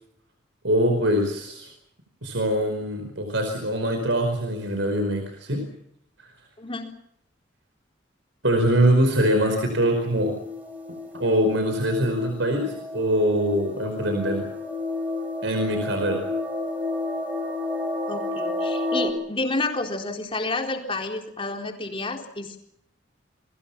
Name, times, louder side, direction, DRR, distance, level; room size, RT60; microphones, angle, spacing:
voice 1, 0.6-1.7 2.2-5.6 6.2-6.3 8.4-10.3 11.1-14.5 15.4-16.2, right 1 dB, 75° right, 5 dB, 5.1 m, -23 dB
voice 2, 6.6-6.9 18.1-22.6, left 2 dB, 30° left, 3 dB, 4.0 m, -30 dB
sound 1, 9.2-19.1, left 2 dB, 10° right, 4.7 m, -31 dB
29.5 x 22.5 x 6.0 m, 0.72 s
head